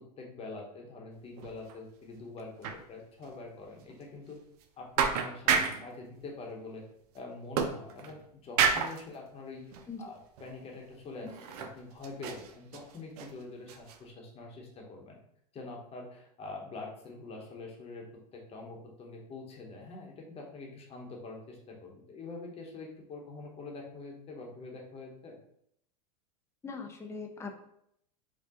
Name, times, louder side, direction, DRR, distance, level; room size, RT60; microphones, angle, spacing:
voice 1, 0.0-4.4 4.8-6.8 7.1-9.6 10.0-15.2 15.5-25.4, left 3 dB, 30° left, 0 dB, 1.0 m, -45 dB
sound 1, 1.4-1.8 2.0-2.1 2.6-2.8 3.2-3.3 3.8-3.9 4.6-4.7 5.0-5.9 7.6-8.2 8.6-9.0 9.7-9.9 10.4-10.5 11.3-11.8 12.0-13.3 13.7-14.0, right 6 dB, 70° right, 0.6 m, -30 dB
voice 2, 26.6-27.5, left 4 dB, 15° left, 3 dB, 0.5 m, -40 dB
4.4 x 2.3 x 2.9 m, 0.73 s
supercardioid pair, 115°, 20 cm